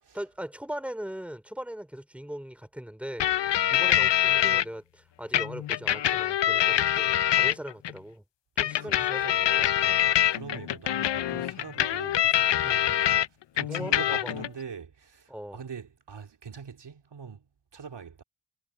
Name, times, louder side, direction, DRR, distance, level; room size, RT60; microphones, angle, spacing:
voice 1, 0.1-8.2 8.6-10.0 12.6-13.3 13.7-14.3 15.3-15.6, equal, 5° right, 3.5 m, -40 dB
sound 1, 3.2-4.6 5.3-7.9 8.6-13.3 13.6-14.5, left 11 dB, 90° left, 0.6 m, -25 dB
voice 2, 8.8-9.1 10.3-13.2 13.5-17.5 17.7-18.2, right 6 dB, 80° right, 2.4 m, -43 dB
wide cardioid pair, 130°, 41 cm